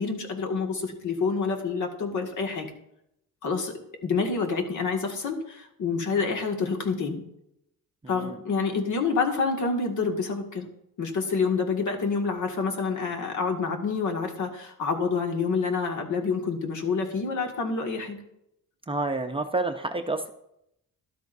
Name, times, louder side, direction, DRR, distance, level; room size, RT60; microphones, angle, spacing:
voice 1, 0.0-2.7 3.4-3.7 4.0-7.2 8.1-10.7 11.0-18.2, left 4 dB, 60° left, 3 dB, 2.1 m, -27 dB
voice 2, 18.9-20.3, right 2 dB, 15° right, 6 dB, 0.6 m, -29 dB
13.0 x 12.0 x 2.7 m, 0.79 s
cardioid pair, 115°, 33 cm